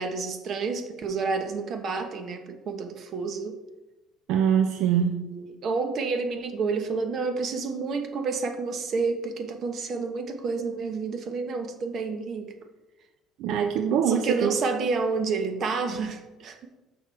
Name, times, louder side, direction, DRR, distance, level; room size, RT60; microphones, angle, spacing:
voice 1, 0.0-3.6 4.9-12.5 14.0-16.7, right 4 dB, 45° right, 6 dB, 1.0 m, -29 dB
voice 2, 4.3-5.2 13.4-14.5, right 8 dB, 65° right, 7 dB, 0.5 m, -23 dB
6.5 x 6.0 x 4.7 m, 1.1 s
cardioid pair, 150°, 0 cm